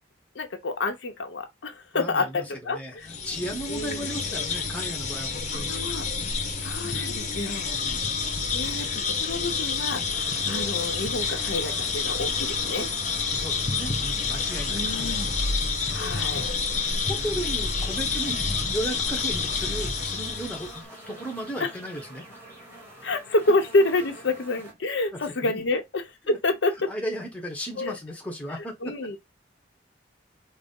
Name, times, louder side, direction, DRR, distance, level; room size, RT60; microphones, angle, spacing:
voice 1, 0.3-3.1 3.7-4.0 5.5-6.1 6.6-7.8 8.5-10.0 10.5-12.9 14.7-15.3 15.9-16.4 16.8-16.9 21.6-21.7 23.0-26.9 27.8-28.0 28.8-29.2, left 2 dB, 80° left, 0.7 m, -28 dB
voice 2, 1.9-5.7 7.7-8.2 13.3-15.0 17.0-22.2 25.1-25.6 26.2-26.4 26.9-28.9, right 1 dB, 5° left, 0.8 m, -35 dB
sound 1, 3.0-20.8, left 5 dB, 40° left, 0.7 m, -28 dB
sound 2, 10.1-24.7, right 1 dB, 15° right, 1.6 m, -46 dB
4.0 x 2.0 x 3.5 m
head